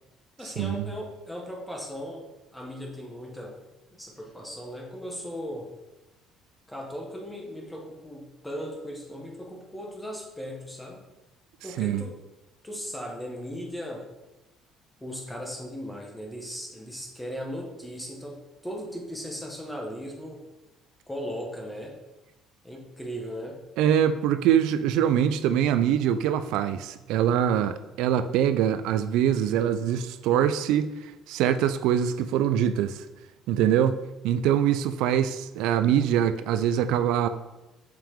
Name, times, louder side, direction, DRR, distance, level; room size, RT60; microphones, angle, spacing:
voice 1, 0.4-3.6 3.9-5.7 6.7-11.0 11.6-12.2 12.6-14.1 15.0-20.4 21.1-22.0 22.6-23.6, equal, 5° left, 1.2 m, -37 dB
voice 2, 23.8-33.1 33.5-34.0 34.2-37.3, right 9 dB, 80° right, 0.4 m, -24 dB
6.7 x 5.9 x 3.7 m
cardioid pair, 155°, 0 cm